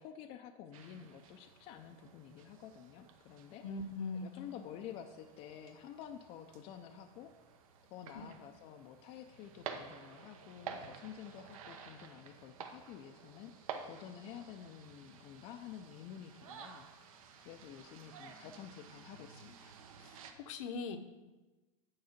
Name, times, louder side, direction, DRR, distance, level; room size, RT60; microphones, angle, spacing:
voice 1, 0.0-3.6 4.2-7.3 7.9-13.5 13.8-16.9 17.4-19.7, left 9 dB, 35° left, 6 dB, 0.4 m, -50 dB
sound 1, 0.7-20.3, right 6 dB, 75° right, 1.1 m, -52 dB
voice 2, 3.6-4.3 8.1-8.2 20.0-21.0, left 4 dB, 65° left, 8 dB, 0.8 m, -41 dB
9.5 x 4.7 x 5.8 m, 1.1 s
supercardioid pair, 150°, 18 cm